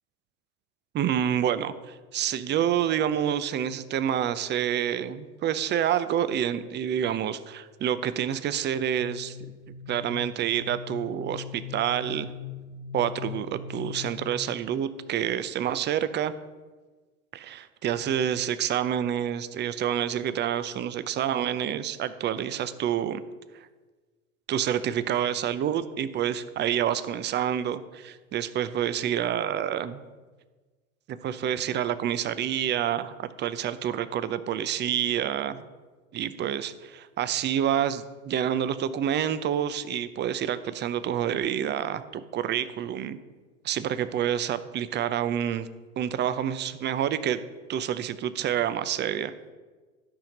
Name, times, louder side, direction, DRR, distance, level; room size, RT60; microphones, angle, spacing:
voice 1, 0.9-9.4 9.9-12.3 12.9-16.3 17.3-23.2 24.5-30.0 31.1-35.6 36.1-43.2 43.6-45.7 46.0-47.4 47.7-49.3, right 10 dB, 25° right, 13 dB, 0.6 m, -28 dB
sound 1, 9.0-14.1, left 8 dB, 75° left, 1.4 m, -40 dB
13.0 x 5.7 x 5.2 m, 1.3 s
hypercardioid pair, 90°, 43 cm